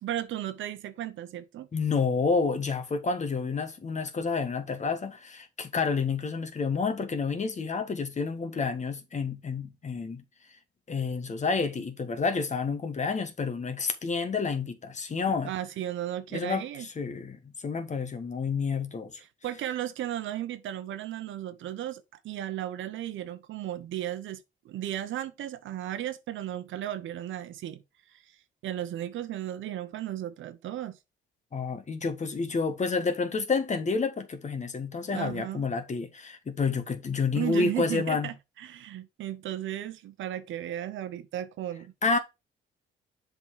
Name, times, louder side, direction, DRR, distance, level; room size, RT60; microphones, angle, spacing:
voice 1, 0.0-1.7 15.4-16.9 19.2-27.8 28.1-28.2 28.6-31.0 35.1-35.7 37.3-41.9, right 12 dB, 75° right, 0.9 m, -35 dB
voice 2, 1.7-10.2 10.9-15.5 16.3-19.2 31.5-38.3 42.0-42.2, left 4 dB, 35° left, 1.4 m, -29 dB
7.2 x 4.0 x 4.7 m
cardioid pair, 90°, 20 cm